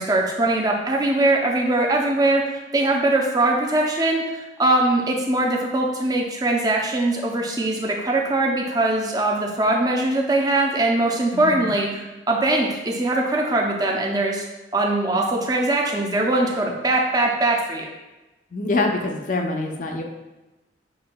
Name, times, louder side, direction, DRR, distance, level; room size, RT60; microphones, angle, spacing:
voice 1, 0.0-14.4 14.7-17.8, right 2 dB, 20° right, 0 dB, 0.5 m, -21 dB
voice 2, 11.3-11.7 18.5-20.0, left 2 dB, 45° left, 3 dB, 0.5 m, -25 dB
7.2 x 2.8 x 2.2 m, 1.1 s
head